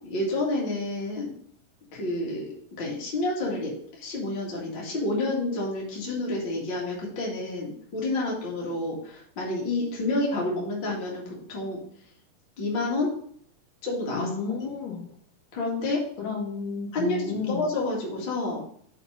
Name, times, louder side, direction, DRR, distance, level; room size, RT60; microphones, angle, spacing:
voice 1, 0.0-1.3 1.9-2.4 2.8-11.8 12.6-13.1 13.8-14.3 14.6-14.7 15.5-16.0 16.9-18.6, left 2 dB, 40° left, -3 dB, 2.1 m, -29 dB
voice 2, 14.1-15.0 16.2-17.6, left 5 dB, 80° left, -2 dB, 3.5 m, -32 dB
6.6 x 4.2 x 5.3 m, 0.62 s
omnidirectional pair, 3.9 m